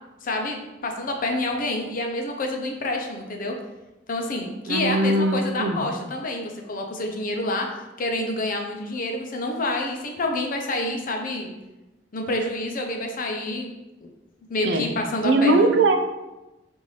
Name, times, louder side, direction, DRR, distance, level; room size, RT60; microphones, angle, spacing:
voice 1, 0.2-3.6 4.1-7.7 8.0-11.5 12.1-13.7 14.0-14.1 14.5-15.7, left 2 dB, 50° left, 3 dB, 0.6 m, -28 dB
voice 2, 4.7-5.8 14.6-14.9 15.2-16.0, right 2 dB, 70° right, 5 dB, 0.5 m, -20 dB
5.4 x 2.6 x 3.2 m, 1.0 s
head